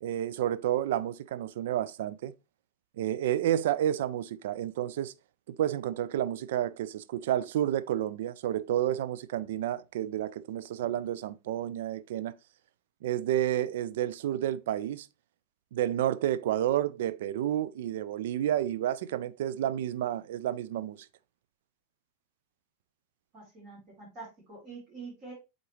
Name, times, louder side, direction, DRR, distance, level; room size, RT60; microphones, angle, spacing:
voice 1, 0.0-2.3 3.0-5.1 5.5-12.4 13.0-15.1 15.7-21.0, right 11 dB, 55° right, 0.4 m, -30 dB
voice 2, 23.3-25.3, right 4 dB, 35° right, 3.8 m, -46 dB
8.3 x 3.9 x 3.1 m
figure-of-eight pair, 90°, 0 cm